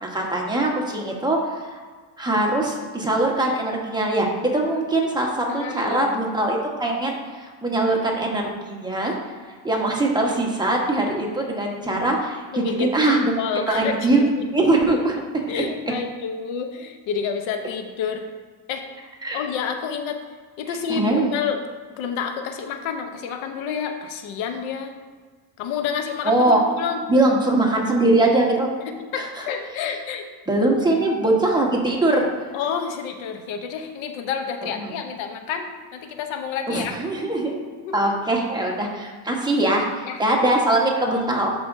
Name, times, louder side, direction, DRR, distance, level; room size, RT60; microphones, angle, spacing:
voice 1, 0.0-1.8 2.2-7.2 7.4-9.2 9.6-13.3 13.7-14.2 14.5-15.6 19.2-19.4 20.9-21.3 26.2-26.6 27.1-28.7 29.1-29.3 30.5-32.3 34.8-34.9 36.7-37.6 37.9-41.5, right 2 dB, 10° right, -1 dB, 1.4 m, -22 dB
voice 2, 5.5-6.2 12.5-14.5 15.5-18.3 18.7-18.8 19.3-20.2 20.6-21.6 22.0-25.0 25.6-27.0 29.1-30.3 32.5-36.9 37.8-38.0 40.0-40.2 40.5-40.6, left 7 dB, 85° left, 6 dB, 0.9 m, -29 dB
12.0 x 5.2 x 2.7 m, 1.5 s
cardioid pair, 120°, 46 cm